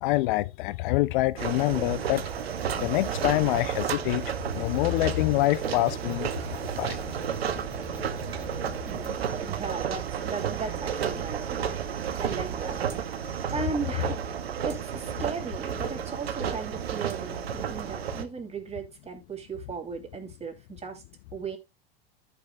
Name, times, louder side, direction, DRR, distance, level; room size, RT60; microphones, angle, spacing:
voice 1, 0.0-2.2 2.8-4.3 4.5-6.3 6.8-7.0, left 18 dB, 55° left, 0.4 m, -25 dB
sound 1, 1.4-18.2, right 8 dB, 80° right, 1.0 m, -32 dB
sound 2, 2.2-9.1, equal, 5° right, 2.3 m, -48 dB
voice 2, 8.7-21.0 21.3-21.6, right 5 dB, 20° right, 2.8 m, -37 dB
14.0 x 6.0 x 2.2 m
hypercardioid pair, 85°, 30 cm